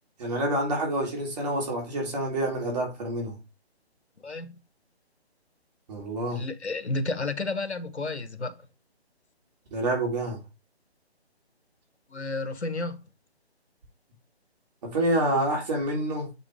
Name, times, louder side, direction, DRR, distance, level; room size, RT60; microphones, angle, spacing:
voice 1, 0.2-3.4 5.9-6.4 9.7-10.4 14.8-16.3, right 1 dB, 40° right, 3.4 m, -27 dB
voice 2, 4.2-4.6 6.3-8.7 12.1-13.0, left 3 dB, 85° left, 1.5 m, -31 dB
7.2 x 5.0 x 3.5 m
figure-of-eight pair, 155°, 33 cm